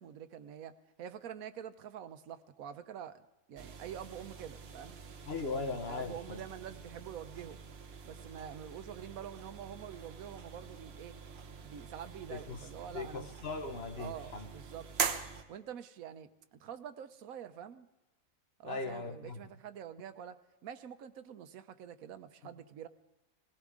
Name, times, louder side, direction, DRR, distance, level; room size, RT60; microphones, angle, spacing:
voice 1, 0.0-3.2 3.5-5.0 5.9-7.6 8.1-11.2 11.6-13.3 14.0-14.9 15.5-17.9 18.6-22.9, right 9 dB, 85° right, 10 dB, 1.2 m, -46 dB
sound 1, 3.6-15.4, right 5 dB, 50° right, 1.2 m, -43 dB
voice 2, 5.2-6.4 12.3-12.6 12.9-14.5 18.6-19.4 22.4-22.5, left 3 dB, 50° left, 7 dB, 1.2 m, -39 dB
19.5 x 16.5 x 3.7 m, 0.98 s
omnidirectional pair, 1.4 m